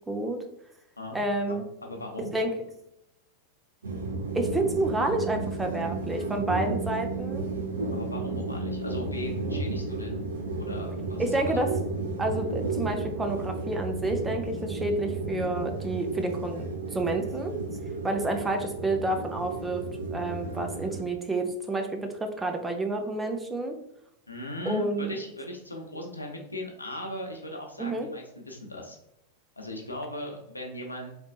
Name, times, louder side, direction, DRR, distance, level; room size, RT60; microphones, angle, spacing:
voice 1, 0.1-0.4 1.1-1.6 2.3-2.5 4.3-7.5 11.2-11.7 12.2-17.5 18.0-19.8 20.1-23.8 24.7-25.1 27.8-28.1, right 2 dB, 10° right, 3 dB, 0.6 m, -29 dB
voice 2, 1.5-2.3 7.9-10.3 10.6-11.6 24.3-29.0 29.6-31.1, left 1 dB, 80° left, 1 dB, 0.8 m, -38 dB
sound 1, 3.8-21.0, right 3 dB, 75° right, 0.8 m, -33 dB
4.1 x 3.5 x 2.4 m, 0.82 s
figure-of-eight pair, 90°, 0 cm